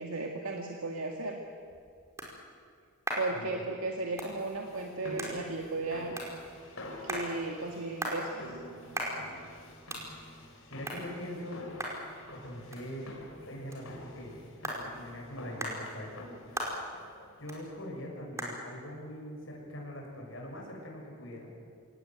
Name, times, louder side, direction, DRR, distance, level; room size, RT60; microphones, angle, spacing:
voice 1, 0.0-1.4 3.2-6.2 7.0-8.6, right 3 dB, 80° right, 2 dB, 2.0 m, -35 dB
sound 1, 1.3-20.6, right 1 dB, 15° right, 4.8 m, -42 dB
sound 2, 4.2-18.0, left 1 dB, 80° left, 5.3 m, -48 dB
voice 2, 10.7-11.7 12.3-13.1 13.5-14.4 14.8-16.3 17.4-21.5, equal, 65° left, -1 dB, 6.9 m, -42 dB
26.5 x 18.5 x 9.4 m, 2.3 s
head